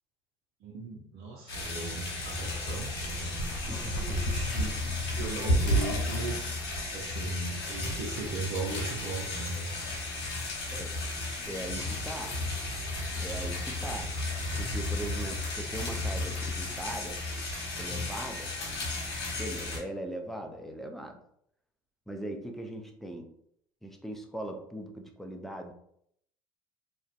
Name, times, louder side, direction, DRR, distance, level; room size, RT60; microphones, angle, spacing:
voice 1, 0.6-4.8 5.1-9.7, right 3 dB, 60° right, -2 dB, 0.6 m, -38 dB
sound 1, 1.5-19.8, left 1 dB, 80° left, 0.9 m, -33 dB
voice 2, 3.7-4.4 10.7-11.0 11.5-12.4 13.2-14.2 14.6-17.2 17.8-18.5 19.4-21.2 22.1-23.3 23.8-25.7, right 1 dB, ahead, 3 dB, 0.5 m, -40 dB
2.5 x 2.1 x 2.4 m, 0.70 s
hypercardioid pair, 65°, 12 cm